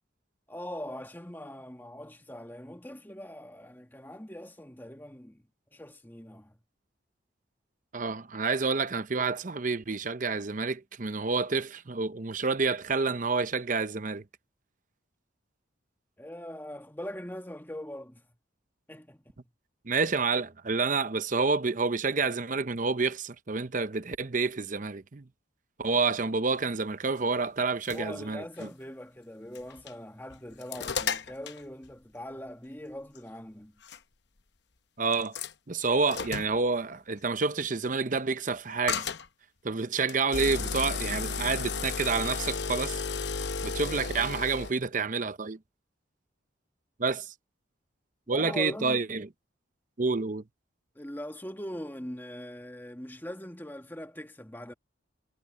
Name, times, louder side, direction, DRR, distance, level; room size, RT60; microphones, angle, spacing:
voice 1, 0.5-5.4 5.7-6.6 16.2-18.2 18.9-19.2 27.9-33.7 48.3-49.1 51.0-54.7, equal, 10° left, 1.8 m, -41 dB
voice 2, 7.9-14.2 19.9-25.2 25.8-28.7 35.0-35.4 35.7-39.1 39.6-43.0 43.6-45.6 47.0-47.3 48.3-49.3 50.0-50.4, right 4 dB, 40° right, 0.7 m, -29 dB
sound 1, 27.6-28.0 28.6-28.7 29.6-29.9 30.3-31.6 33.2-33.3 33.8-34.0 35.1-35.5 36.1-36.6 38.9-39.3 40.1-44.7, left 5 dB, 60° left, 0.9 m, -33 dB
head